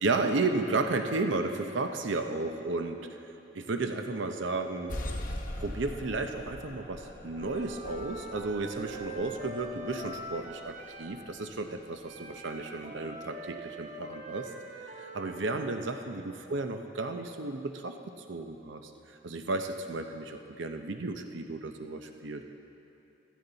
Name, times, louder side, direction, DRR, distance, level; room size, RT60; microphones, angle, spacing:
voice 1, 0.0-3.1 3.5-5.0 5.6-14.5 15.0-22.4, right 3 dB, 85° right, 6 dB, 0.7 m, -33 dB
sound 1, 4.9-12.0, left 1 dB, 45° left, 1.0 m, -42 dB
Wind instrument woodwind instrument, 7.4-11.2 12.0-15.7, right 1 dB, 45° right, 1.1 m, -43 dB
15.5 x 14.0 x 4.0 m, 3.0 s
head